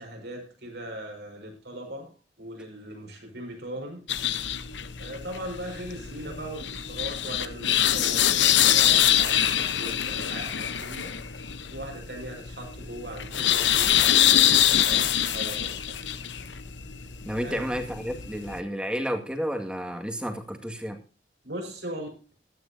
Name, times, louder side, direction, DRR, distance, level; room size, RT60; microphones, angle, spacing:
voice 1, 0.0-4.1 5.0-11.1 11.7-16.0 16.6-16.7 17.4-17.7 21.4-22.1, right 1 dB, 70° right, 5.8 m, -39 dB
sound 1, 4.1-18.6, left 11 dB, 90° left, 1.0 m, -25 dB
voice 2, 17.3-21.0, equal, 5° right, 2.0 m, -31 dB
16.0 x 13.0 x 2.8 m
head